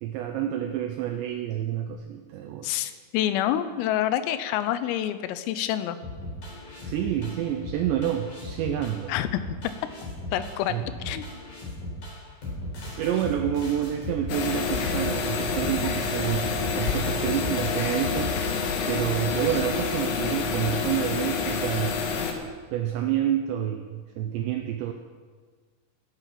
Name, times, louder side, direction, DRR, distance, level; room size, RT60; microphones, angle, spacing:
voice 1, 0.0-2.7 6.8-9.1 10.7-10.8 13.0-18.3 18.9-22.0 22.7-24.9, right 11 dB, 85° right, 5 dB, 2.5 m, -28 dB
voice 2, 2.6-6.0 9.1-9.4 10.3-11.3, left 12 dB, 90° left, 12 dB, 3.4 m, -27 dB
sound 1, 6.0-19.2, left 1 dB, 40° left, 5.6 m, -37 dB
sound 2, 14.3-22.3, left 5 dB, 70° left, 3.4 m, -28 dB
18.5 x 9.1 x 5.9 m, 1.5 s
omnidirectional pair, 5.9 m